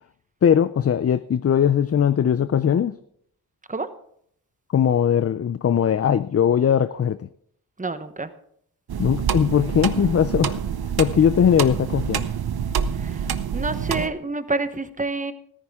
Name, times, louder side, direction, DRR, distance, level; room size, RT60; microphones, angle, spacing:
voice 1, 0.4-3.0 4.7-7.3 9.0-10.6 11.0-12.3, left 8 dB, 40° left, 14 dB, 0.4 m, -20 dB
voice 2, 7.8-8.3 12.9-15.3, right 3 dB, 20° right, 10 dB, 1.0 m, -28 dB
sound 1, 8.9-14.1, right 7 dB, 70° right, 0.8 m, -27 dB
14.5 x 14.0 x 3.6 m, 0.68 s
wide cardioid pair, 90°, 38 cm